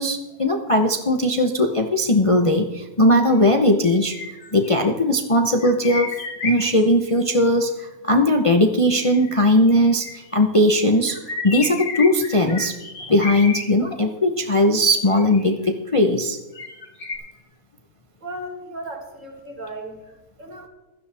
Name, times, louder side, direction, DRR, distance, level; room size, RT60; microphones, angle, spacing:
voice 1, 0.0-4.1 4.5-6.2 6.4-11.2 11.4-12.8 13.1-16.4, left 1 dB, 25° left, 4 dB, 0.7 m, -19 dB
sound 1, 3.8-4.9 5.6-7.1 8.9-10.3 11.1-13.7 15.1-15.7 16.6-17.2, left 3 dB, 70° left, 2.9 m, -32 dB
voice 2, 18.2-20.7, right 1 dB, 55° right, 1 dB, 2.7 m, -36 dB
16.0 x 13.0 x 3.5 m, 1.1 s
omnidirectional pair, 1.6 m